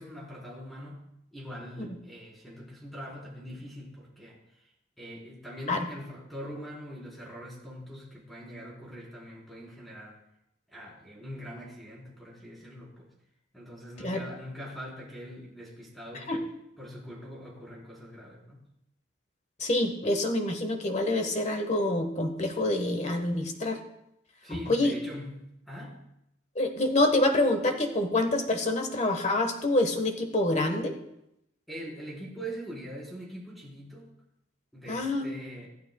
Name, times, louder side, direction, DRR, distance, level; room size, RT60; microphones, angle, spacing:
voice 1, 0.0-4.6 5.0-10.2 10.7-13.1 13.5-16.4 16.8-18.6 24.4-26.1 31.7-34.1 34.7-35.7, equal, ahead, -5 dB, 4.2 m, -43 dB
voice 2, 19.6-23.8 24.5-24.9 26.5-30.9 34.9-35.2, left 2 dB, 35° left, 5 dB, 1.3 m, -26 dB
25.5 x 9.3 x 2.3 m, 0.84 s
head